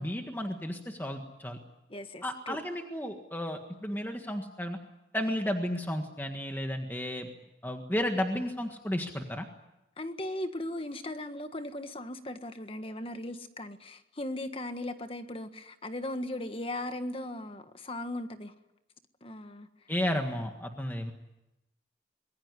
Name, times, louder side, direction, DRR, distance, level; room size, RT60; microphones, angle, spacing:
voice 1, 0.0-1.6 2.2-4.8 5.1-7.3 7.6-9.5 19.9-21.1, equal, 10° left, 4 dB, 1.7 m, -33 dB
voice 2, 1.9-2.6 10.0-18.5 19.2-19.7, left 1 dB, 30° left, 8 dB, 1.5 m, -38 dB
26.0 x 21.5 x 9.8 m, 0.92 s
head